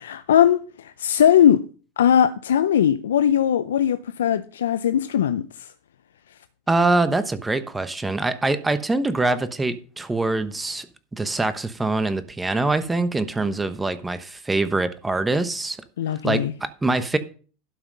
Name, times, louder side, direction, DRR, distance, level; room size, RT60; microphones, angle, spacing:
voice 1, 0.0-1.6 2.0-5.7 16.0-16.5, left 9 dB, 85° left, 0.5 m, -19 dB
voice 2, 6.7-10.9 11.1-15.8 16.2-17.2, right 2 dB, 15° right, 1.1 m, -24 dB
12.0 x 5.7 x 5.4 m
hypercardioid pair, 95°, 0 cm